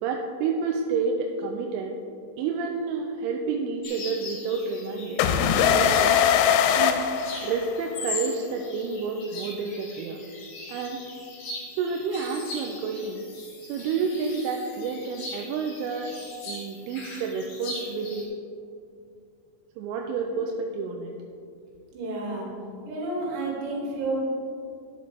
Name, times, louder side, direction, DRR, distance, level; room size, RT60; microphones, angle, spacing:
voice 1, 0.0-1.9 2.4-5.2 5.6-6.2 6.7-7.1 7.4-10.2 10.7-11.0 11.7-13.2 13.6-16.1 16.5-18.4 19.8-21.1, right 5 dB, 85° right, 2 dB, 3.1 m, -29 dB
sound 1, 3.8-18.3, left 2 dB, 55° left, 3.4 m, -40 dB
sound 2, 5.2-8.0, left 8 dB, 85° left, 3.0 m, -21 dB
voice 2, 21.9-22.5 22.9-24.2, right 2 dB, 70° right, -4 dB, 4.1 m, -30 dB
10.5 x 7.7 x 3.2 m, 2.5 s
omnidirectional pair, 5.6 m